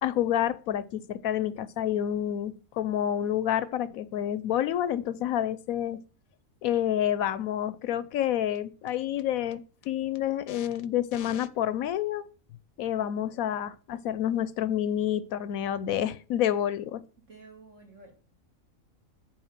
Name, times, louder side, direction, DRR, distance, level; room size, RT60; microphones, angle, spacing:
voice 1, 0.0-6.0 6.6-12.3 12.8-17.0, left 10 dB, 75° left, 1.0 m, -28 dB
voice 2, 17.2-18.1, right 3 dB, 55° right, 2.9 m, -51 dB
8.7 x 5.3 x 7.2 m
omnidirectional pair, 1.5 m